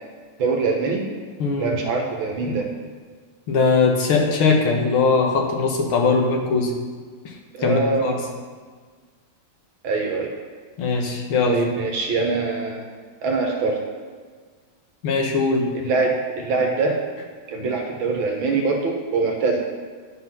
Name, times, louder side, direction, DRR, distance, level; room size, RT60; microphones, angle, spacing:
voice 1, 0.4-1.0 1.6-2.7 7.5-8.2 9.8-10.3 11.5-12.9 13.2-13.8 15.7-17.0 17.5-19.6, right 4 dB, 75° right, 1 dB, 2.0 m, -23 dB
voice 2, 1.4-1.7 3.5-6.7 7.6-8.2 10.8-11.5 15.0-15.7, left 4 dB, 85° left, 1 dB, 2.0 m, -20 dB
10.5 x 4.1 x 5.9 m, 1.5 s
omnidirectional pair, 2.3 m